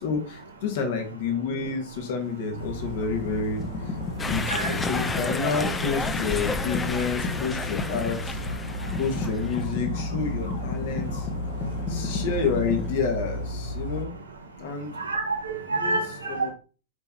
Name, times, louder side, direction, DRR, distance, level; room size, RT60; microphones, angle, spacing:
voice 1, 0.0-8.4 9.0-11.3 11.9-14.1 14.6-15.0 15.7-16.0 16.3-16.5, left 5 dB, 55° left, 2.5 m, -29 dB
sound 1, 2.3-2.5 2.9-12.9, left 4 dB, 30° left, 1.7 m, -34 dB
Dog, 2.5-14.0, equal, 75° left, 2.0 m, -34 dB
sound 2, 4.2-9.6, left 3 dB, 15° left, 1.0 m, -32 dB
voice 2, 15.0-16.5, right 3 dB, 75° right, 2.1 m, -28 dB
7.9 x 5.6 x 4.5 m
figure-of-eight pair, 90°, 0 cm